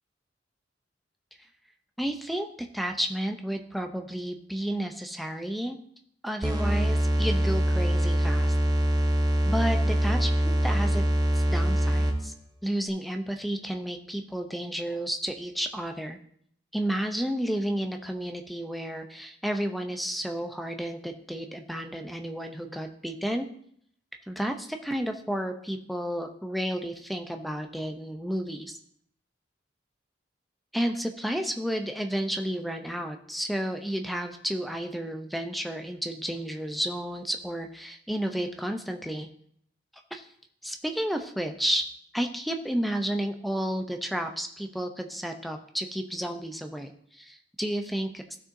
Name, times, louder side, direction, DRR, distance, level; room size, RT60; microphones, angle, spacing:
voice 1, 2.0-2.5 2.7-5.8 6.2-8.6 9.5-10.3 10.6-11.0 11.3-12.3 12.6-16.2 16.7-23.5 24.3-28.8 30.7-39.3 40.1-40.3 40.6-41.9 42.1-48.4, equal, ahead, 4 dB, 0.6 m, -31 dB
sound 1, 6.4-12.3, right 1 dB, 20° right, 0.9 m, -24 dB
15.0 x 6.3 x 2.7 m, 0.66 s
head